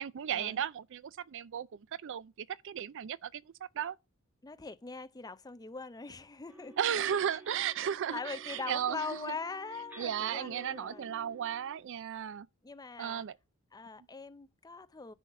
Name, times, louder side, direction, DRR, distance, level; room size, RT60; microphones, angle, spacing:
voice 1, 0.0-4.0 6.8-9.3 10.0-12.5 13.0-13.4, right 9 dB, 60° right, 0.4 m, -35 dB
voice 2, 4.4-6.8 8.1-11.1 12.6-13.3 13.7-15.1, left 4 dB, 20° left, 0.5 m, -42 dB
sound 1, 6.5-11.8, right 1 dB, 10° right, 1.8 m, -53 dB
9.9 x 3.9 x 7.3 m
head